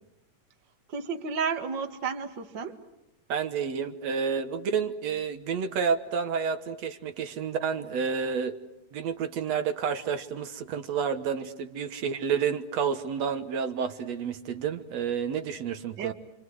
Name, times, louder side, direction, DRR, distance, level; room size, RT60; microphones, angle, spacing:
voice 1, 0.9-2.8 16.0-16.1, right 5 dB, 40° right, 6 dB, 2.1 m, -32 dB
voice 2, 3.3-8.6 8.9-16.1, right 6 dB, 65° right, 9 dB, 2.0 m, -30 dB
28.0 x 26.5 x 7.9 m, 0.89 s
omnidirectional pair, 3.8 m